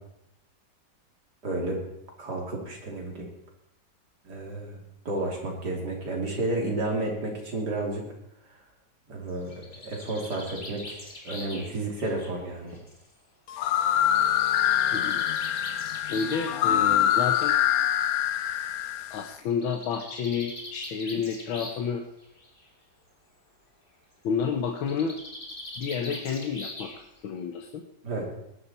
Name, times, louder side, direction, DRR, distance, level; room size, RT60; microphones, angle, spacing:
voice 1, 1.4-1.8 2.2-3.3 4.2-4.8 5.1-8.0 9.1-12.8 28.0-28.2, right 2 dB, 55° right, 0 dB, 3.7 m, -31 dB
Bird, 9.3-13.1 14.1-16.5 17.6-17.7 18.0-18.1 18.4-18.5 19.5-21.9 22.2-22.7 24.8-27.2, left 1 dB, 25° left, 2.4 m, -42 dB
sound 1, 13.5-19.3, left 11 dB, 70° left, 0.9 m, -25 dB
voice 2, 14.9-15.2 16.1-17.6 19.1-22.0 24.2-25.2 25.8-27.8, left 6 dB, 85° left, 4 dB, 1.8 m, -30 dB
19.5 x 11.0 x 4.3 m, 0.81 s
omnidirectional pair, 2.1 m